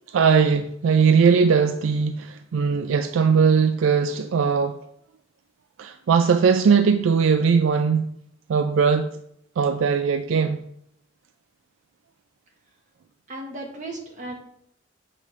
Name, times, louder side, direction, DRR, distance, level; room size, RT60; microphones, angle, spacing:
voice 1, 0.1-4.8 5.8-8.1 8.5-9.2 9.6-10.7, right 6 dB, 75° right, 9 dB, 0.4 m, -20 dB
voice 2, 13.3-14.4, right 2 dB, 40° right, 0 dB, 1.4 m, -35 dB
7.5 x 5.0 x 3.1 m, 0.73 s
head